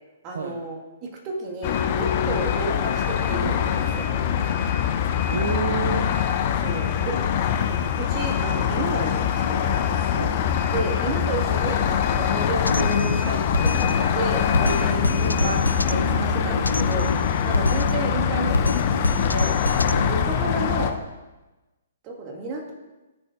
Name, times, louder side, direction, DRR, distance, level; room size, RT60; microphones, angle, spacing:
voice 1, 0.2-4.6 6.6-7.2 8.0-9.8 10.7-15.6 15.9-17.1 17.5-19.5 20.1-21.0 22.0-22.7, right 2 dB, 30° right, 0 dB, 1.8 m, -32 dB
sound 1, 1.6-20.9, left 8 dB, 40° left, 0.6 m, -23 dB
voice 2, 5.3-6.2 7.1-7.2 7.6-7.8 10.1-10.5 15.0-16.7, right 6 dB, 60° right, 6 dB, 0.6 m, -32 dB
Drum kit, 12.7-20.6, left 2 dB, 85° left, 0.3 m, -27 dB
14.5 x 7.0 x 2.5 m, 1.1 s
figure-of-eight pair, 120°, 0 cm